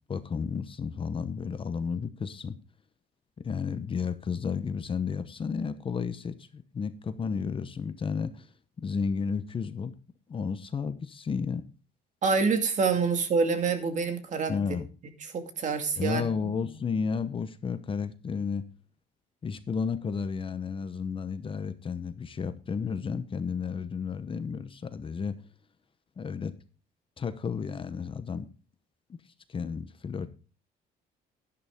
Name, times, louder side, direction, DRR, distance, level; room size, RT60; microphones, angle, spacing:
voice 1, 0.1-2.6 3.4-8.5 8.8-9.9 10.3-11.6 14.5-14.9 16.0-18.7 19.4-25.4 26.2-26.5 27.2-28.5 29.5-30.3, left 6 dB, 30° left, 12 dB, 1.0 m, -32 dB
voice 2, 12.2-14.8 15.2-16.5, right 5 dB, 45° right, 6 dB, 2.3 m, -27 dB
11.0 x 11.0 x 3.7 m, 0.35 s
cardioid pair, 110°, 17 cm